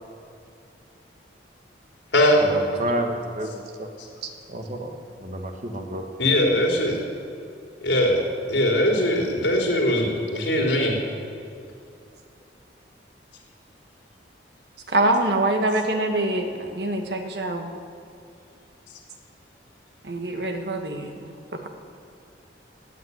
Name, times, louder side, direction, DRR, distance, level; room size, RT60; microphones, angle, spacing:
voice 1, 2.5-3.9 4.5-6.0, right 1 dB, 40° right, 4 dB, 1.5 m, -30 dB
voice 2, 6.2-7.0 7.8-8.2 8.5-10.9, left 1 dB, 70° left, -1 dB, 3.9 m, -20 dB
voice 3, 14.9-17.7 20.0-21.1, right 2 dB, 65° right, 4 dB, 1.6 m, -24 dB
16.0 x 9.3 x 9.7 m, 2.6 s
head